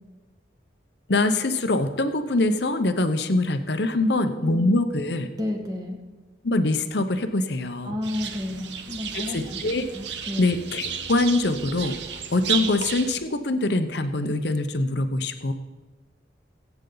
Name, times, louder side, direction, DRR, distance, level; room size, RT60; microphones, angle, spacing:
voice 1, 1.1-5.3 6.4-7.9 9.1-9.9 10.4-15.5, left 2 dB, 70° left, 9 dB, 0.9 m, -24 dB
voice 2, 4.0-4.6 5.4-6.0 7.8-9.6 9.9-10.4, left 1 dB, 20° right, 1 dB, 1.8 m, -32 dB
sound 1, 8.0-13.2, right 8 dB, 75° right, 0.9 m, -33 dB
22.5 x 8.1 x 4.0 m, 1.2 s
head